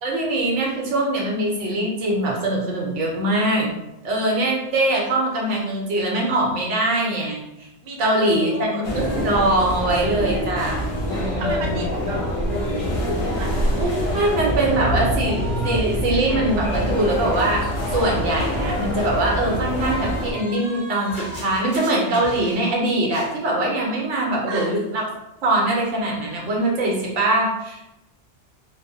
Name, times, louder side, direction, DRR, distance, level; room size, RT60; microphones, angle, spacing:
voice 1, 0.0-3.8 4.0-7.7 8.0-11.7 13.8-17.7 17.9-25.0 25.4-27.9, right 1 dB, 85° right, -2 dB, 1.0 m, -22 dB
voice 2, 7.8-8.8 11.4-14.3 24.5-24.7, right 2 dB, 60° right, -1 dB, 0.7 m, -35 dB
sound 1, 8.8-20.3, equal, 85° left, 1.0 m, -25 dB
sound 2, 12.1-22.8 23.0-23.3, right 1 dB, 15° left, 1.2 m, -38 dB
3.0 x 2.0 x 2.6 m, 0.90 s
omnidirectional pair, 1.2 m